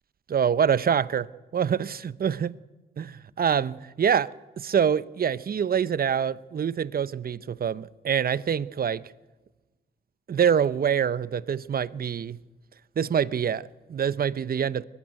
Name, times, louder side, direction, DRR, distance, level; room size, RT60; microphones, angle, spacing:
voice 1, 0.3-2.5 3.0-4.3 4.6-9.0 10.3-12.4 13.0-14.8, right 8 dB, 50° right, 0.7 m, -25 dB
21.0 x 15.0 x 9.3 m
cardioid pair, 60°, 19 cm